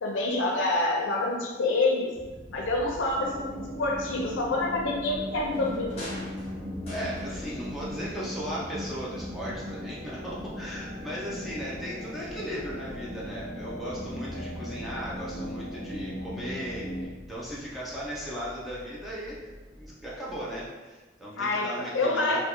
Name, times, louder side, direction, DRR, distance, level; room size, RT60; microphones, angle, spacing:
voice 1, 0.0-2.1 2.5-6.1 21.4-22.4, left 2 dB, 80° left, 0 dB, 0.5 m, -27 dB
sound 1, 2.1-20.9, equal, 40° right, 1.1 m, -45 dB
sound 2, 3.2-17.0, left 1 dB, 75° right, 0.8 m, -38 dB
sound 3, 5.3-7.7 8.0-9.1 9.4-9.5, left 1 dB, 35° left, 1.1 m, -44 dB
voice 2, 6.9-19.4 19.8-22.4, equal, ahead, -7 dB, 0.5 m, -37 dB
3.5 x 2.4 x 2.9 m, 1.2 s
head